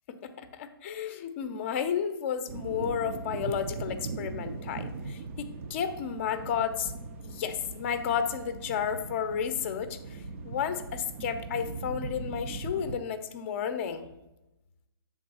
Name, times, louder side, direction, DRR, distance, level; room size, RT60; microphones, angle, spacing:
voice 1, 0.1-6.9 7.2-14.1, left 8 dB, 30° left, 9 dB, 0.6 m, -32 dB
sound 1, 2.5-13.0, right 4 dB, 35° right, 0.4 m, -40 dB
7.6 x 3.7 x 5.4 m, 0.97 s
hypercardioid pair, 155°, 13 cm